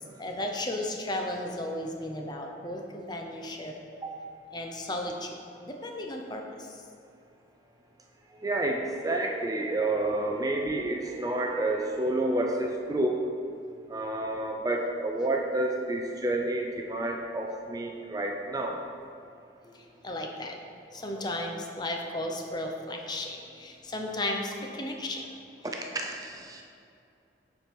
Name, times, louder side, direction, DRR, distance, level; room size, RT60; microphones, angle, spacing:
voice 1, 0.2-3.7 4.5-5.4 5.6-6.4 20.0-20.5 20.9-25.2, left 1 dB, 25° left, 2 dB, 0.6 m, -34 dB
voice 2, 8.4-13.3 13.9-18.8 25.6-26.6, right 2 dB, 20° right, 1 dB, 0.4 m, -29 dB
7.0 x 4.6 x 5.1 m, 2.6 s
head